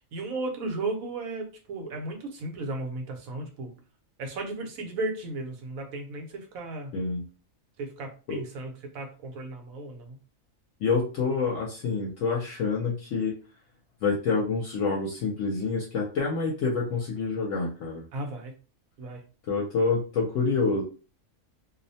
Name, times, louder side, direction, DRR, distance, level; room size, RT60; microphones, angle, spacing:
voice 1, 0.1-3.7 4.2-6.9 7.8-10.2 18.1-18.5 19.0-19.2, right 2 dB, 80° right, 3 dB, 1.1 m, -35 dB
voice 2, 6.9-7.2 8.3-8.4 10.8-13.3 14.0-18.1 19.5-20.8, left 4 dB, 70° left, -2 dB, 0.9 m, -27 dB
2.7 x 2.1 x 2.6 m, 0.35 s
omnidirectional pair, 1.4 m